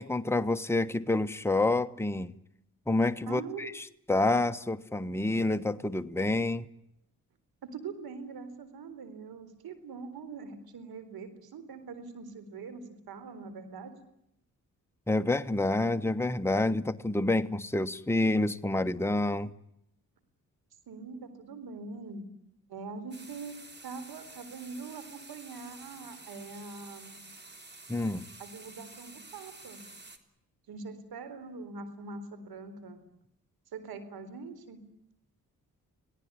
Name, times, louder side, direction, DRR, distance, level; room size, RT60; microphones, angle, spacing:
voice 1, 0.0-2.3 2.9-6.7 15.1-19.5 27.9-28.2, left 2 dB, 5° left, 9 dB, 1.3 m, -28 dB
voice 2, 3.3-3.8 7.6-13.9 20.9-22.3 22.7-23.6 23.8-27.2 28.4-29.8 30.7-33.0 33.7-34.8, right 4 dB, 85° right, 12 dB, 4.1 m, -43 dB
sound 1, 23.1-30.2, right 2 dB, 30° right, 3.4 m, -50 dB
27.0 x 18.0 x 9.7 m, 0.77 s
cardioid pair, 65°, 36 cm